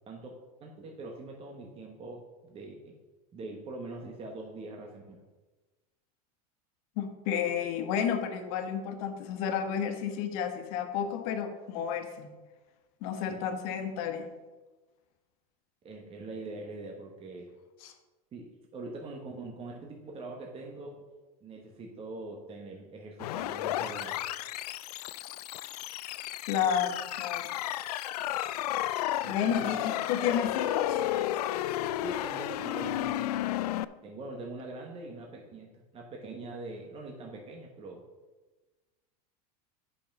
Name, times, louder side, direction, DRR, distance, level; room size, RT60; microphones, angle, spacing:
voice 1, 0.1-2.9 3.3-5.2 13.3-13.4 15.8-17.5 18.3-21.0 21.4-24.2 29.2-29.7 32.0-33.5 34.0-38.0, right 2 dB, 30° right, 1 dB, 1.2 m, -43 dB
voice 2, 7.0-12.3 13.0-14.3 17.8-17.9 26.5-27.5 29.2-31.0, left 8 dB, 65° left, 7 dB, 1.3 m, -31 dB
sound 1, 23.2-33.8, left 13 dB, 90° left, 0.4 m, -33 dB
8.4 x 5.7 x 5.9 m, 1.2 s
supercardioid pair, 125°, 19 cm